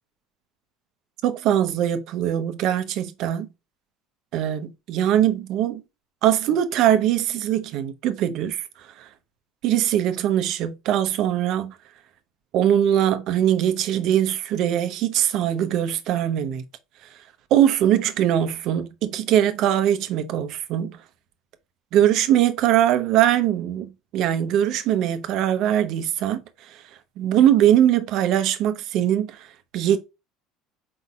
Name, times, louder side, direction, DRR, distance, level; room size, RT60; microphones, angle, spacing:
voice 1, 1.2-3.5 4.3-5.8 6.2-8.6 9.0-9.1 9.6-11.7 12.5-16.6 17.5-21.0 21.9-26.4 27.2-29.4 29.7-30.0, right 11 dB, 60° right, 0.8 m, -21 dB
4.8 x 4.1 x 2.4 m
hypercardioid pair, 85°, 0 cm